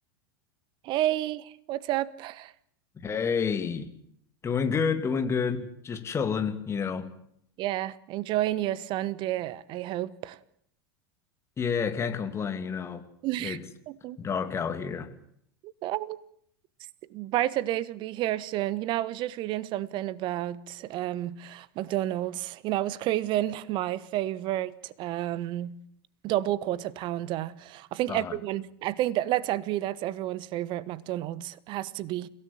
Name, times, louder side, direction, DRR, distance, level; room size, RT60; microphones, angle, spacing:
voice 1, 0.8-2.5 7.6-10.4 13.2-13.6 13.9-14.2 15.6-16.2 17.1-25.8 26.2-32.3, right 14 dB, 40° right, 1.2 m, -30 dB
voice 2, 3.0-3.9 4.4-7.1 11.6-13.0 13.4-13.6 14.2-15.1 28.1-28.3, left 6 dB, 20° left, 2.7 m, -29 dB
30.0 x 17.0 x 7.8 m
figure-of-eight pair, 85°, 13 cm